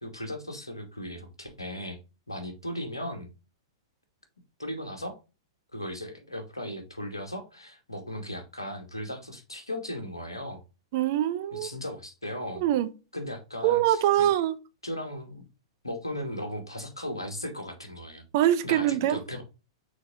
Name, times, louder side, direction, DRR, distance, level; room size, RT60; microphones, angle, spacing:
voice 1, 0.0-2.0 2.3-3.3 4.6-5.2 5.7-10.6 11.5-12.6 13.1-14.3 14.8-15.5 15.8-18.2 18.6-19.4, left 1 dB, 80° left, 2.1 m, -37 dB
voice 2, 10.9-11.7 12.6-12.9 13.6-14.6 18.3-19.2, right 12 dB, 45° right, 0.8 m, -24 dB
6.4 x 4.7 x 3.7 m
figure-of-eight pair, 105°, 2 cm